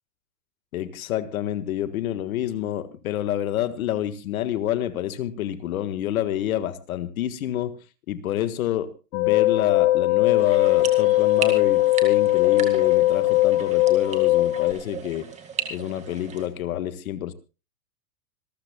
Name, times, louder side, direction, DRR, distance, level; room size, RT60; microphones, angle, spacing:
voice 1, 0.7-7.8 8.1-15.3 15.7-17.3, left 12 dB, 55° left, 1.6 m, -28 dB
sound 1, 9.1-14.7, left 17 dB, 25° left, 1.4 m, -20 dB
sound 2, 10.4-16.5, right 7 dB, 15° right, 2.0 m, -36 dB
26.5 x 14.0 x 2.2 m
supercardioid pair, 165°, 49 cm